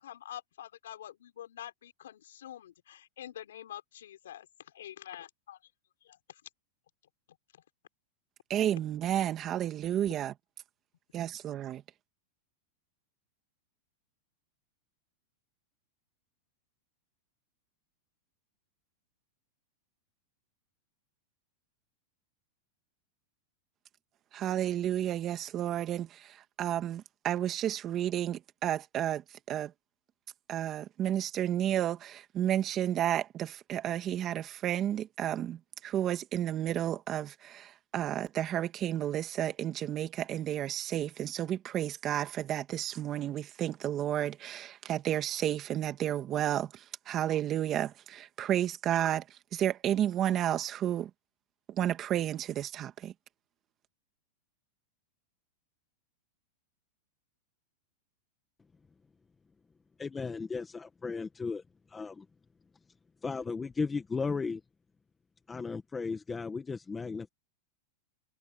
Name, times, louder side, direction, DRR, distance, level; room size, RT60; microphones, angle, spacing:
voice 1, 0.0-5.7 6.0-6.4 7.5-7.6, left 11 dB, 85° left, 5.1 m, -47 dB
voice 2, 8.5-10.3 11.1-11.8 24.3-29.7 30.5-51.1 51.7-53.1, right 11 dB, 30° right, 1.9 m, -32 dB
voice 3, 60.0-62.2 63.2-64.6 65.5-67.3, left 4 dB, 15° left, 1.7 m, -35 dB
supercardioid pair, 135°, 0 cm